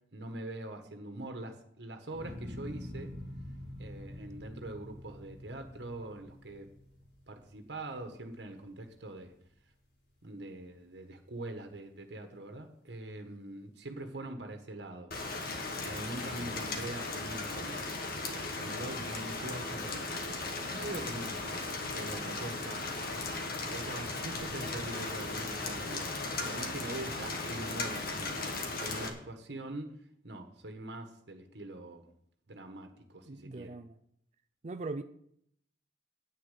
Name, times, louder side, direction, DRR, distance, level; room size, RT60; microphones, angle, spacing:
voice 1, 0.1-3.2 3.8-6.7 7.3-9.3 10.2-23.2 23.6-29.9 30.2-32.0 32.5-33.8, right 1 dB, 70° right, 1.4 m, -43 dB
sound 1, 2.1-8.4 8.9-9.5, left 1 dB, 75° left, 5.5 m, -46 dB
Rain, 15.1-29.1, left 3 dB, 60° left, 2.0 m, -37 dB
voice 2, 26.4-26.7 33.3-34.0 34.6-35.0, right 3 dB, 40° right, 0.5 m, -41 dB
9.9 x 9.3 x 6.8 m
head